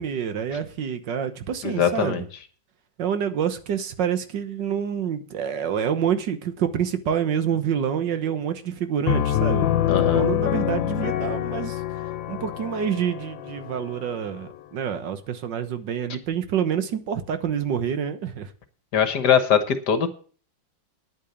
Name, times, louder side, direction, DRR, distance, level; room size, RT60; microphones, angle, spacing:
voice 1, 0.0-2.2 3.0-9.7 10.1-11.8 12.3-18.5, right 8 dB, 75° right, 10 dB, 1.8 m, -27 dB
voice 2, 1.6-2.2 9.9-10.3 18.9-20.1, left 7 dB, 65° left, 10 dB, 1.8 m, -21 dB
Piano, 9.1-14.6, left 11 dB, 90° left, 1.5 m, -26 dB
10.0 x 8.7 x 7.3 m, 0.42 s
omnidirectional pair, 2.0 m